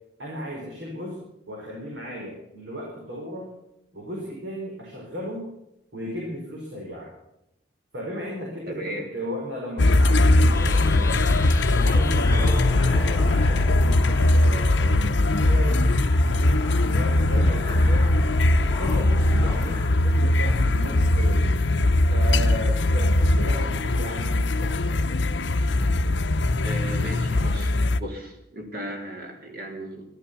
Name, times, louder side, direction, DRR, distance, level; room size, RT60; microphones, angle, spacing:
voice 1, 0.2-1.2 1.5-3.5 3.9-5.5 5.9-7.1 7.9-11.3 11.7-18.1 18.6-21.5 22.1-25.0, equal, 75° right, -3 dB, 4.9 m, -35 dB
voice 2, 8.7-9.1 26.6-30.1, right 1 dB, 50° right, 2 dB, 3.6 m, -36 dB
sound 1, 9.8-28.0, left 2 dB, 75° left, 0.7 m, -20 dB
sound 2, 10.5-20.0, left 3 dB, 15° left, 1.0 m, -38 dB
14.5 x 13.0 x 7.0 m, 0.84 s
head